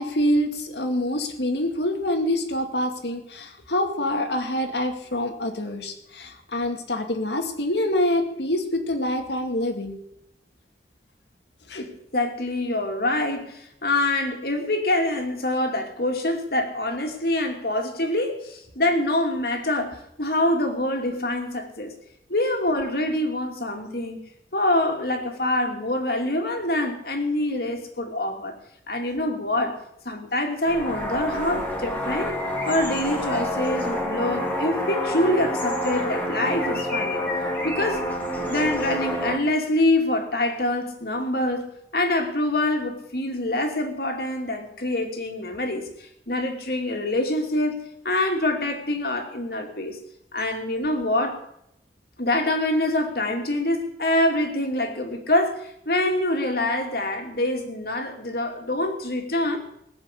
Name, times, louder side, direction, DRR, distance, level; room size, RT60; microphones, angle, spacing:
voice 1, 0.0-10.0 11.7-11.8, left 1 dB, 75° left, 5 dB, 2.2 m, -26 dB
voice 2, 11.7-22.0 22.3-24.2 24.5-28.6 28.9-29.8 30.0-32.3 32.7-37.2 37.6-38.0 38.5-47.8 48.0-50.0 50.3-51.4 52.2-59.6, left 1 dB, 60° left, 3 dB, 2.7 m, -25 dB
sound 1, 30.7-39.4, left 1 dB, 10° left, 2.5 m, -28 dB
20.0 x 7.1 x 8.4 m, 0.77 s
head